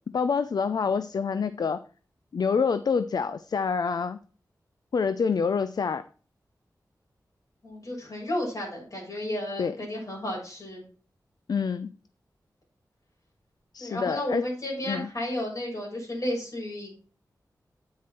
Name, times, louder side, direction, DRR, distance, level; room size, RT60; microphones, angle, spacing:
voice 1, 0.1-1.8 2.3-4.2 4.9-6.0 9.6-9.7 11.5-11.9 13.7-14.4 14.8-15.1, left 5 dB, 70° left, 13 dB, 0.5 m, -27 dB
voice 2, 7.6-10.8 13.8-16.9, left 1 dB, 55° left, -1 dB, 6.7 m, -32 dB
9.6 x 9.5 x 4.4 m, 0.39 s
wide cardioid pair, 90°, 7 cm